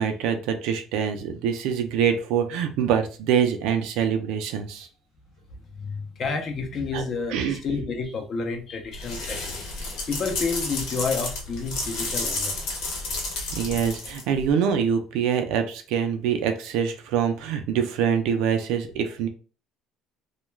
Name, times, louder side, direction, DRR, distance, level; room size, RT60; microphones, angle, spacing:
voice 1, 0.0-4.9 6.9-7.0 7.3-7.6 13.5-19.3, right 8 dB, 80° right, 7 dB, 0.4 m, -25 dB
voice 2, 5.7-9.7 10.1-12.9, left 4 dB, 40° left, 4 dB, 0.6 m, -30 dB
sound 1, 8.9-14.5, left 3 dB, 70° left, 0.9 m, -31 dB
2.3 x 2.2 x 3.1 m, 0.36 s
cardioid pair, 135°, 0 cm